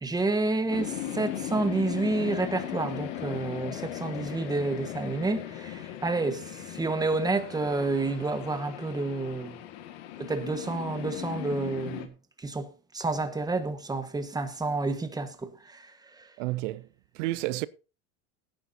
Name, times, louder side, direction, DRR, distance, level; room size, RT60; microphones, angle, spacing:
voice 1, 0.0-9.6 10.2-12.1 12.4-12.7 12.9-15.9 16.2-16.3, right 3 dB, 10° right, 1.4 m, -29 dB
sound 1, 0.7-12.1, left 12 dB, 80° left, 1.8 m, -38 dB
voice 2, 16.4-16.8 17.2-17.7, right 18 dB, 80° right, 0.6 m, -30 dB
17.5 x 9.6 x 2.7 m
supercardioid pair, 120°, 37 cm